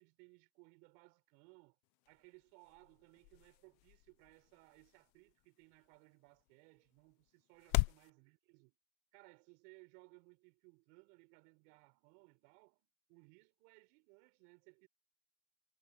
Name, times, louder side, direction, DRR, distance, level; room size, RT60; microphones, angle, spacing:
voice 1, 0.0-1.8 2.1-8.7 9.1-14.9, right 32 dB, 45° right, 5.2 m, -64 dB
sound 1, 1.8-8.1, left 26 dB, 40° left, 1.0 m, -42 dB
hypercardioid pair, 130°, 21 cm